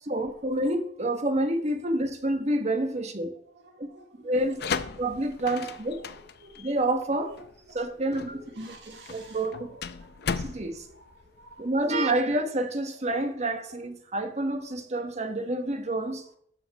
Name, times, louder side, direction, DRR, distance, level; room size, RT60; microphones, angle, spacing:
voice 1, 0.0-3.3 3.8-3.9 4.2-4.6 5.0-6.0 6.6-7.3 7.7-9.7 10.4-10.9 11.6-16.2, right 1 dB, 40° right, 1.2 m, -28 dB
voice 2, 3.5-4.9 5.7-6.6 7.3-7.8 8.1-10.4 10.7-12.1 13.1-13.2, right 2 dB, 70° right, 2.4 m, -51 dB
sound 1, 4.3-11.9, left 5 dB, 65° left, 0.6 m, -36 dB
12.5 x 5.3 x 4.8 m
head